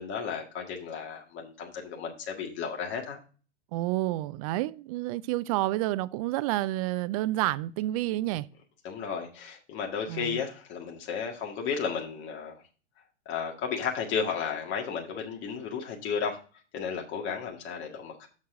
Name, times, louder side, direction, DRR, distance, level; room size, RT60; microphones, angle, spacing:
voice 1, 0.0-3.2 8.8-12.6 13.2-16.4 16.7-18.3, left 6 dB, 35° left, 1.8 m, -33 dB
voice 2, 3.7-8.5 10.1-10.4, right 16 dB, 35° right, 0.4 m, -29 dB
7.3 x 6.5 x 3.6 m
hypercardioid pair, 105°, 34 cm